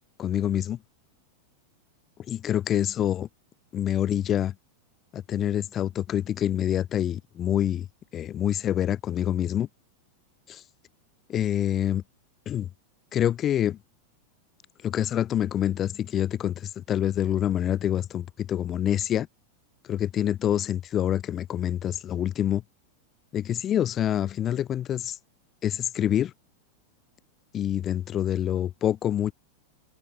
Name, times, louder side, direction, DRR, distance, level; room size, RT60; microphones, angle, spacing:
voice 1, 0.2-0.8 2.3-3.3 3.7-4.5 5.1-7.9 8.1-9.7 10.5-10.6 11.3-12.0 12.5-12.7 13.1-13.8 14.8-19.3 19.9-22.6 23.3-25.2 25.6-26.3 27.5-29.3, left 10 dB, 30° left, 1.6 m, -26 dB
figure-of-eight pair, 90°, 0 cm